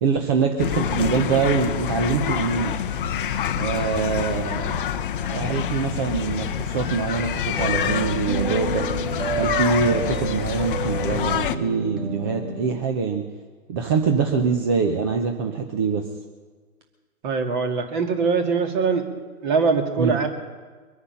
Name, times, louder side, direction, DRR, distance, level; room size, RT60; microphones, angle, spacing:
voice 1, 0.0-2.8 3.6-4.8 5.3-8.9 9.3-13.2 13.7-16.0 20.0-20.1, right 5 dB, 15° right, 4 dB, 0.6 m, -24 dB
sound 1, 0.6-11.6, left 8 dB, 35° left, 0.7 m, -27 dB
sound 2, 7.6-12.8, right 3 dB, 70° right, 2.6 m, -30 dB
voice 2, 17.2-19.1 19.4-20.3, right 5 dB, 35° right, 5 dB, 2.0 m, -22 dB
23.0 x 9.6 x 5.7 m, 1.5 s
hypercardioid pair, 140°, 44 cm